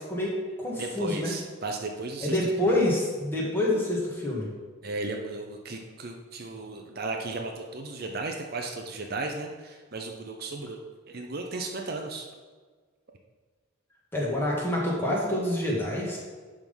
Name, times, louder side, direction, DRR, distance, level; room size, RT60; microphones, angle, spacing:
voice 1, 0.0-1.3 2.2-4.5 14.1-16.2, left 1 dB, 10° left, -4 dB, 1.8 m, -27 dB
voice 2, 0.8-2.4 4.8-10.8 11.1-12.3, right 3 dB, 50° right, 3 dB, 0.7 m, -35 dB
11.0 x 3.8 x 5.4 m, 1.5 s
head